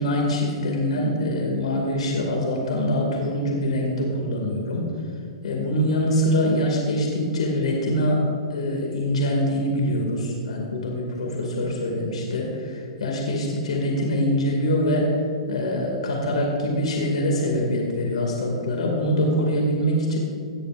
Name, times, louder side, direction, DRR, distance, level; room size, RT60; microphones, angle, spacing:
voice 1, 0.0-4.9 5.4-8.2 8.5-15.1 15.5-20.2, equal, 80° left, 0 dB, 2.3 m, -24 dB
17.0 x 11.0 x 2.6 m, 2.2 s
hypercardioid pair, 140°, 3 cm